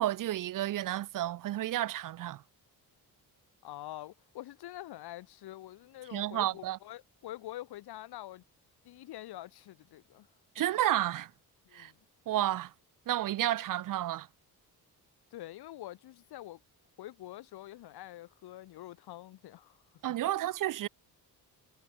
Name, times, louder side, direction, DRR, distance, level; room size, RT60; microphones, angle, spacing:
voice 1, 0.0-2.4 6.1-6.8 10.6-11.3 11.7-11.9 12.3-12.7 13.1-14.3 20.0-20.9, right 13 dB, 60° right, 0.5 m, -31 dB
voice 2, 3.6-8.4 8.8-10.3 11.7-12.0 15.3-16.6 17.0-19.8 20.2-20.3, left 14 dB, 85° left, 1.0 m, -46 dB
cardioid pair, 135°, 38 cm